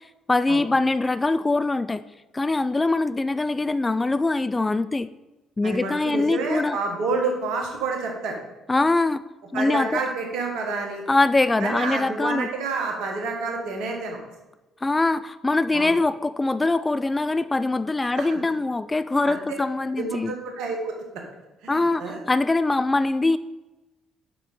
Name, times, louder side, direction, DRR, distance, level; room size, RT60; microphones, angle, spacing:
voice 1, 0.3-2.0 2.3-5.1 5.6-6.8 8.7-9.2 9.5-10.0 11.1-12.5 14.8-20.3 21.7-23.4, left 2 dB, 20° left, 14 dB, 0.3 m, -23 dB
voice 2, 5.6-8.4 9.5-11.0 11.6-14.3 15.7-15.9 18.2-18.4 19.2-19.6 20.0-21.2 21.6-22.2, right 3 dB, 65° right, 2 dB, 1.5 m, -29 dB
6.8 x 6.2 x 4.2 m, 1.0 s
figure-of-eight pair, 45°, 0 cm